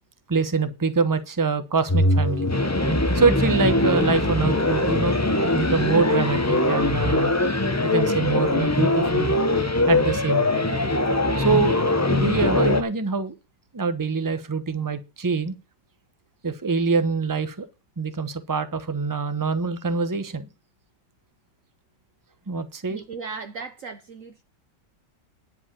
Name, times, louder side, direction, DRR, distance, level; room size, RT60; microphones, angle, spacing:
voice 1, 0.3-2.5 3.1-5.3 5.5-7.3 7.8-9.3 9.9-10.7 11.4-11.8 12.1-13.3 13.7-15.5 16.4-17.7 18.0-20.5 22.5-23.0, right 4 dB, 20° right, 0.6 m, -24 dB
sound 1, 1.9-12.8, left 2 dB, 25° left, 0.4 m, -22 dB
voice 2, 22.9-24.4, right 4 dB, 55° right, 1.1 m, -37 dB
10.5 x 4.9 x 7.4 m
omnidirectional pair, 1.9 m